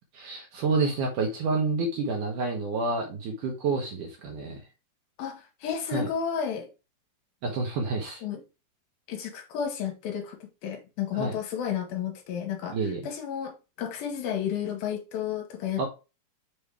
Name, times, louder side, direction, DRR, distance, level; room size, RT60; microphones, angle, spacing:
voice 1, 0.1-4.6 5.9-6.1 7.4-8.2 11.1-11.3 12.7-13.0 15.8-15.9, right 3 dB, 65° right, 2.4 m, -28 dB
voice 2, 5.2-6.7 8.2-8.4 9.1-10.4 10.6-15.9, left 8 dB, 70° left, 2.7 m, -32 dB
6.8 x 4.4 x 3.4 m
omnidirectional pair, 4.7 m